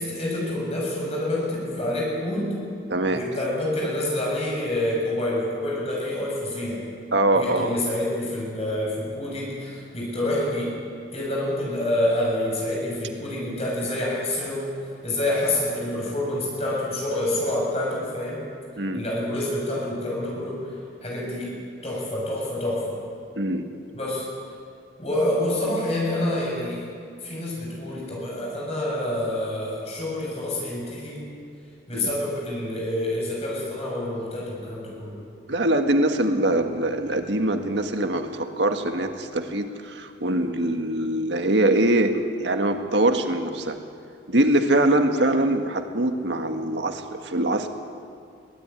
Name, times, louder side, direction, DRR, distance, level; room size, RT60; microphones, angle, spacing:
voice 1, 0.0-2.6 3.1-6.8 7.4-10.7 11.1-14.7 15.0-18.4 18.9-20.7 21.0-21.6 21.8-23.0 23.9-24.3 25.0-26.9 27.2-31.2 31.9-35.2, left 1 dB, 35° left, -3 dB, 7.5 m, -27 dB
voice 2, 2.9-3.2 7.1-7.7 18.8-19.0 23.4-23.7 31.9-32.1 35.5-43.8 44.3-47.7, right 1 dB, 85° right, 6 dB, 1.7 m, -23 dB
22.5 x 16.5 x 9.9 m, 2.3 s
head